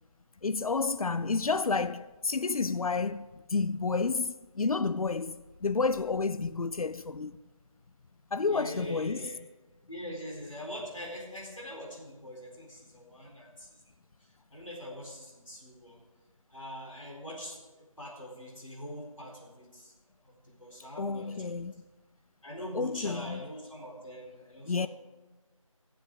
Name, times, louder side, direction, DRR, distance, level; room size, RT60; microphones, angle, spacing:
voice 1, 0.4-7.4 8.3-9.3 21.0-21.8 22.7-23.4 24.7-24.9, left 4 dB, 85° left, 0.4 m, -30 dB
voice 2, 8.4-9.3 9.9-13.8 14.2-16.0 16.5-17.6 18.0-19.9 20.2-21.5 22.4-24.9, equal, 65° left, 4.0 m, -43 dB
14.5 x 7.7 x 6.3 m
figure-of-eight pair, 180°, 18 cm